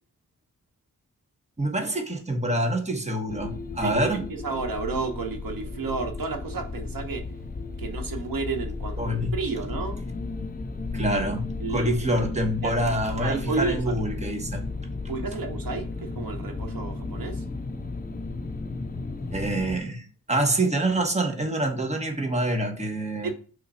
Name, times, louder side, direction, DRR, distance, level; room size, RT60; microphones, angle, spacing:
voice 1, 1.6-4.2 9.0-9.3 10.9-14.6 19.3-23.3, right 1 dB, 20° right, 1.2 m, -26 dB
sound 1, 3.3-19.8, left 3 dB, 25° left, 0.5 m, -34 dB
voice 2, 3.8-7.2 7.8-10.0 11.6-12.2 12.6-12.9 13.2-13.9 15.1-17.4 23.2-23.3, right 4 dB, 75° right, 1.1 m, -32 dB
5.7 x 3.8 x 5.5 m
wide cardioid pair, 130°, 34 cm